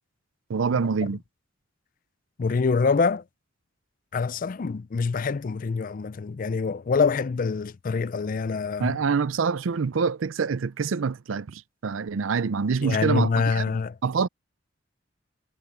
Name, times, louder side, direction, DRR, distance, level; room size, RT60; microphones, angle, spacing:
voice 1, 0.5-1.2 8.8-13.6 14.0-14.3, right 5 dB, 80° right, 0.5 m, -26 dB
voice 2, 2.4-3.2 4.1-9.0 12.8-13.9, left 5 dB, 45° left, 0.4 m, -25 dB
head